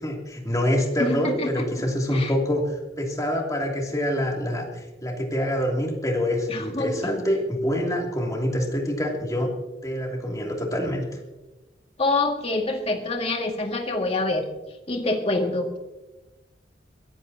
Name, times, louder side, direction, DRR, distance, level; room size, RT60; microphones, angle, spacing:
voice 1, 0.0-9.5 9.8-11.1, equal, 20° left, 0 dB, 2.9 m, -26 dB
voice 2, 1.0-1.6 2.1-2.3 6.5-7.2 12.0-14.4 14.9-15.8, left 2 dB, 35° left, 2 dB, 2.1 m, -26 dB
22.0 x 15.5 x 2.9 m, 1.1 s
head